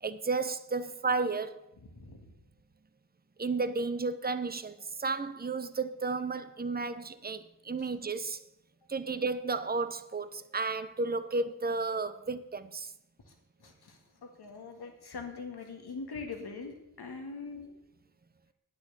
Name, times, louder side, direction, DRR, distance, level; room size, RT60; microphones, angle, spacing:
voice 1, 0.0-1.6 3.4-8.4 8.9-12.9, right 4 dB, 25° right, 0.8 m, -33 dB
voice 2, 1.8-2.3 7.8-7.9 13.3-13.4 13.6-17.8, left 4 dB, 85° left, 1.9 m, -43 dB
9.4 x 6.5 x 8.1 m
cardioid pair, 45°, 38 cm